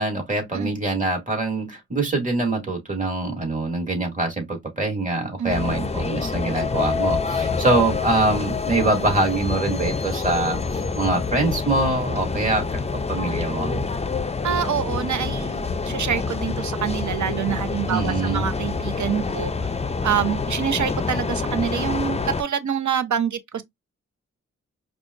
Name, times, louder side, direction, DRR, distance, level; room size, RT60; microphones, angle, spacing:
voice 1, 0.0-12.6 12.9-13.9 17.9-18.4, right 2 dB, 25° right, 2.2 m, -24 dB
voice 2, 5.4-5.9 14.4-19.7 20.0-23.6, right 8 dB, 75° right, 0.7 m, -26 dB
sound 1, 5.5-22.4, left 4 dB, 20° left, 0.5 m, -27 dB
4.9 x 2.4 x 2.5 m
wide cardioid pair, 75°, 30 cm